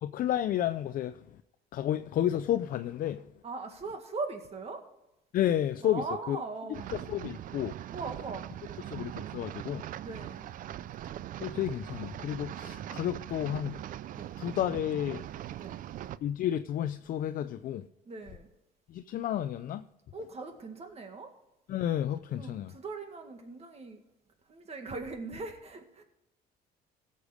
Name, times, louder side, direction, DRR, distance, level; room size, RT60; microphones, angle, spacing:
voice 1, 0.0-1.4 1.7-3.3 5.3-6.4 6.9-7.7 8.9-9.8 11.4-13.8 14.4-15.2 16.2-17.9 18.9-19.9 21.7-22.7, left 11 dB, 55° left, 0.5 m, -31 dB
voice 2, 3.4-4.8 5.8-6.9 7.9-8.9 10.0-10.5 14.1-14.3 15.6-15.7 18.1-18.5 20.1-21.3 22.4-24.0 24.5-26.0, right 3 dB, 40° right, 2.0 m, -40 dB
sound 1, 6.7-16.2, right 12 dB, 55° right, 0.4 m, -41 dB
16.5 x 6.7 x 5.0 m
cardioid pair, 110°, 17 cm